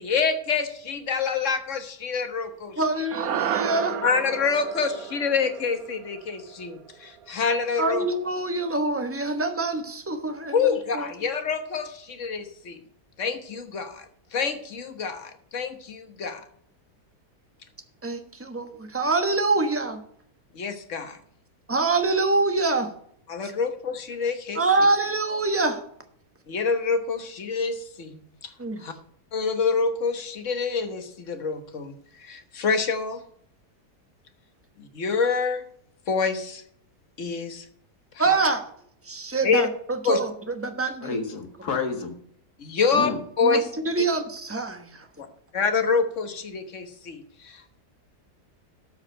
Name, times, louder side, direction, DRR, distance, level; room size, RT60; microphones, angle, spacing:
voice 1, 0.0-2.8 4.0-8.0 10.5-12.8 13.2-14.1 14.3-16.4 20.5-21.2 23.3-24.6 26.5-28.5 28.8-28.9 29.3-33.2 34.8-35.6 36.1-36.6 37.2-37.7 38.1-38.4 39.4-39.7 40.0-40.2 42.6-43.1 43.4-43.7 45.2-45.3 45.5-47.8, left 5 dB, 50° left, 8 dB, 1.5 m, -27 dB
voice 2, 2.8-4.0 7.8-10.6 10.9-11.1 18.0-20.0 21.7-22.9 23.4-23.5 24.5-25.8 28.6-28.8 38.2-38.6 39.0-41.2 43.4-45.1, right 3 dB, 10° right, 6 dB, 1.0 m, -25 dB
sound 1, 3.1-7.6, right 9 dB, 65° right, 1.2 m, -33 dB
voice 3, 41.0-42.1 42.9-43.2, left 5 dB, 70° left, 5 dB, 2.2 m, -29 dB
13.0 x 4.9 x 7.7 m, 0.65 s
omnidirectional pair, 1.8 m